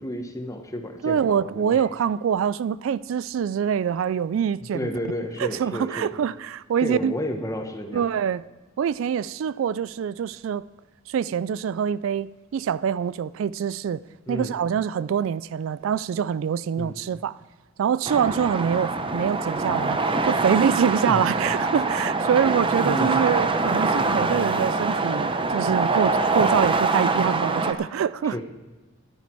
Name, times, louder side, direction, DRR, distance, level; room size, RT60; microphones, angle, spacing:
voice 1, 0.0-1.8 4.7-6.1 6.8-8.0 14.3-14.5 16.8-16.9 21.1-21.2 22.8-23.2 28.3-28.4, left 1 dB, 15° left, 1.2 m, -31 dB
voice 2, 1.0-4.9 5.4-7.1 7.9-8.4 8.8-10.6 11.1-14.0 14.3-17.4 17.8-28.4, right 8 dB, 70° right, 0.3 m, -25 dB
sound 1, 18.0-27.7, right 3 dB, 25° right, 0.7 m, -24 dB
14.0 x 11.0 x 4.6 m
head